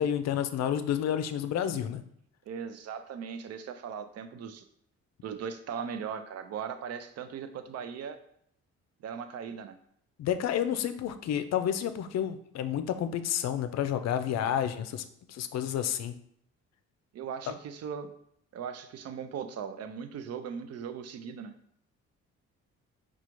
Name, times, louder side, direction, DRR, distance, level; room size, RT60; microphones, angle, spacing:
voice 1, 0.0-2.0 10.2-15.0 15.3-16.1, left 9 dB, 60° left, 10 dB, 0.5 m, -30 dB
voice 2, 2.5-4.6 5.2-8.2 9.0-9.8 17.1-18.1 18.5-21.5, right 7 dB, 55° right, 9 dB, 0.5 m, -38 dB
4.8 x 2.4 x 3.0 m, 0.69 s
cardioid pair, 90°, 30 cm